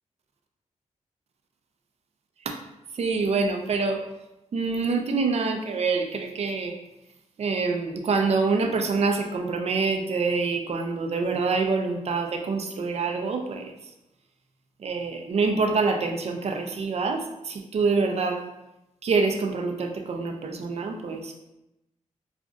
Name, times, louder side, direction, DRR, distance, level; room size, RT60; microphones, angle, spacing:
voice 1, 2.9-4.0 4.5-6.8 7.4-13.7 14.8-18.4 19.0-21.4, right 4 dB, 55° right, 4 dB, 0.5 m, -26 dB
5.0 x 2.4 x 2.4 m, 0.91 s
cardioid pair, 80°, 13 cm